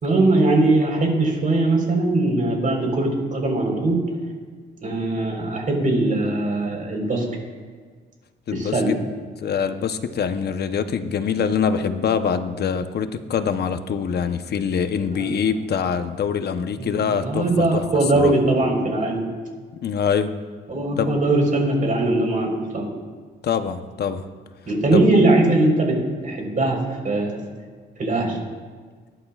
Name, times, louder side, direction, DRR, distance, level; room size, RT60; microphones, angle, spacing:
voice 1, 0.0-4.0 4.8-7.3 8.5-9.0 15.1-15.3 16.8-19.2 20.7-22.9 24.7-26.0 26.2-26.8 27.0-27.4 28.0-28.4, right 2 dB, 40° right, 0 dB, 4.1 m, -20 dB
voice 2, 8.5-8.8 9.4-17.8 18.1-18.3 19.8-20.3 20.9-21.1 23.4-24.3 24.9-25.0, left 7 dB, 55° left, 9 dB, 0.9 m, -24 dB
19.5 x 11.5 x 2.4 m, 1.5 s
cardioid pair, 90°, 20 cm